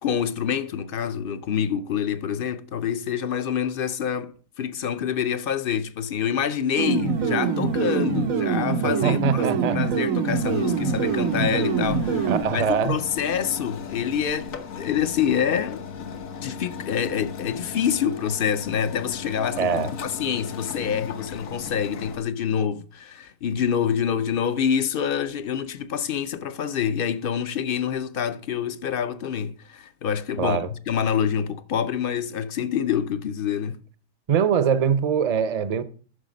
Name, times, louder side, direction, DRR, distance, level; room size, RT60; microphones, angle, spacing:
voice 1, 0.0-15.8 16.4-33.8, left 8 dB, 55° left, 0.7 m, -26 dB
sound 1, 6.8-12.4, right 5 dB, 90° right, 1.4 m, -24 dB
voice 2, 9.0-10.0 12.2-13.0 19.6-19.9 30.4-30.7 34.3-35.8, right 7 dB, 40° right, 0.6 m, -23 dB
sound 2, 10.3-22.2, left 6 dB, 80° left, 1.4 m, -37 dB
10.0 x 6.5 x 5.1 m
omnidirectional pair, 1.4 m